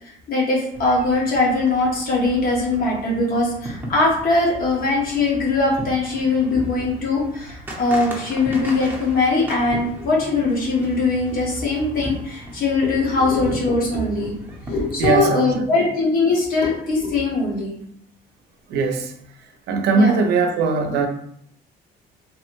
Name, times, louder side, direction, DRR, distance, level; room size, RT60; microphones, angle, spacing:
voice 1, 0.3-14.3 14.7-17.8 19.9-20.1, left 3 dB, 60° left, -3 dB, 1.2 m, -21 dB
sound 1, 0.7-15.2, right 1 dB, 10° right, 0.7 m, -36 dB
voice 2, 15.0-15.9 18.7-19.1 19.7-21.1, right 4 dB, 80° right, 5 dB, 0.5 m, -20 dB
3.3 x 2.1 x 2.9 m, 0.67 s
cardioid pair, 110°, 17 cm